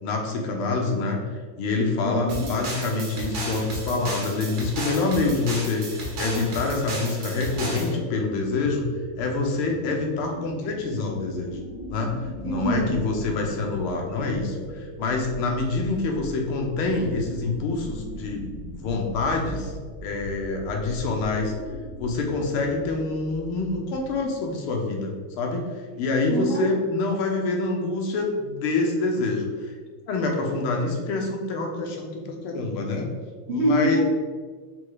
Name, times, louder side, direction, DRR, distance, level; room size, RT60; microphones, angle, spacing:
voice 1, 0.0-1.2 1.6-8.9 9.2-11.6 11.9-18.5 18.7-19.7 20.0-21.5 22.0-25.7 26.0-29.7 30.1-33.1 33.5-34.0, left 3 dB, 85° left, 1 dB, 1.6 m, -26 dB
voice 2, 2.0-2.5 12.4-13.0 26.3-26.7 33.5-34.0, right 1 dB, 85° right, -6 dB, 0.6 m, -25 dB
sound 1, 2.3-7.9, right 1 dB, 55° right, 1.3 m, -33 dB
sound 2, 6.9-24.4, equal, 55° left, 1.0 m, -39 dB
4.4 x 2.3 x 4.6 m, 1.5 s
omnidirectional pair, 2.4 m